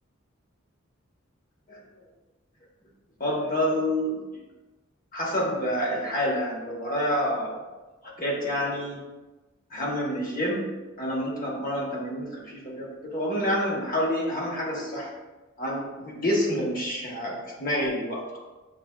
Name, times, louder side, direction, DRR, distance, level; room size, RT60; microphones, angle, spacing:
voice 1, 3.2-4.2 5.1-7.6 8.2-9.0 9.7-15.1 15.6-18.4, equal, 45° left, -3 dB, 1.0 m, -28 dB
6.6 x 2.6 x 2.2 m, 1.2 s
head